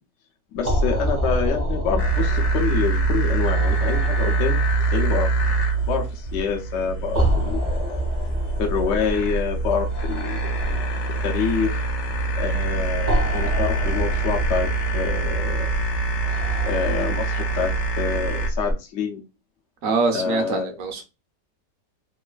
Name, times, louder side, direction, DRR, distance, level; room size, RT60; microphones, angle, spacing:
voice 1, 0.5-4.6 4.9-5.3 5.9-8.0 8.6-10.8 11.2-11.9 12.3-14.7 14.9-15.7 16.6-19.2 20.1-20.7, left 6 dB, 70° left, 0.7 m, -27 dB
sound 1, 0.6-18.7, equal, 50° right, 0.5 m, -28 dB
sound 2, 2.0-18.5, right 3 dB, 85° left, 1.2 m, -25 dB
voice 2, 19.8-21.0, right 4 dB, 65° right, 0.8 m, -24 dB
3.1 x 2.4 x 2.3 m
omnidirectional pair, 1.9 m